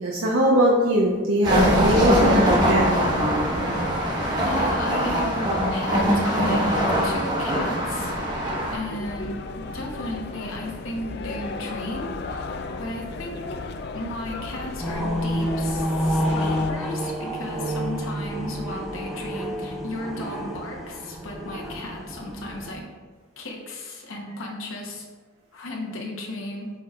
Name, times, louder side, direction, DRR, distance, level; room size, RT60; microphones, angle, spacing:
voice 1, 0.0-2.9 3.3-3.5, equal, 85° right, -4 dB, 0.8 m, -20 dB
sound 1, 1.4-8.7, equal, 20° right, 1.2 m, -22 dB
voice 2, 4.4-8.1 8.7-12.5 12.8-13.4 13.9-22.8 23.4-25.1 25.5-26.7, left 1 dB, 80° left, -1 dB, 1.0 m, -34 dB
sound 2, 8.0-16.7, left 3 dB, 50° left, 0.3 m, -35 dB
sound 3, 14.8-22.8, equal, ahead, 0.8 m, -29 dB
8.5 x 4.8 x 2.4 m, 1.4 s
head